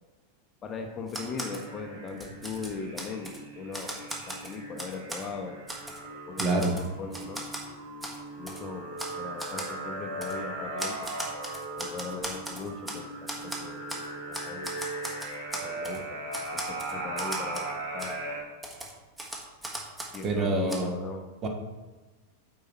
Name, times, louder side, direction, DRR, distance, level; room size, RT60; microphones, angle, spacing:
voice 1, 0.6-5.6 6.1-7.4 8.4-11.1 11.8-14.7 15.6-18.2 20.1-21.3, left 5 dB, 25° left, 4 dB, 0.8 m, -39 dB
Typewriter, 1.1-1.7 2.1-3.4 3.7-5.3 5.7-6.0 6.4-7.7 8.0-8.2 8.5-8.6 9.0-9.1 9.4-9.7 10.2-10.4 10.8-13.0 13.3-14.1 14.3-16.0 16.3-17.7 18.0-18.1 18.6-20.3 20.7-20.8, right 1 dB, 10° right, 1.3 m, -38 dB
sound 1, 1.2-18.4, right 2 dB, 65° right, 2.3 m, -38 dB
voice 2, 6.4-6.7 20.2-20.9 21.4-21.5, right 2 dB, 30° right, 2 dB, 1.4 m, -26 dB
8.5 x 4.8 x 4.2 m, 1.2 s
figure-of-eight pair, 90°, 0 cm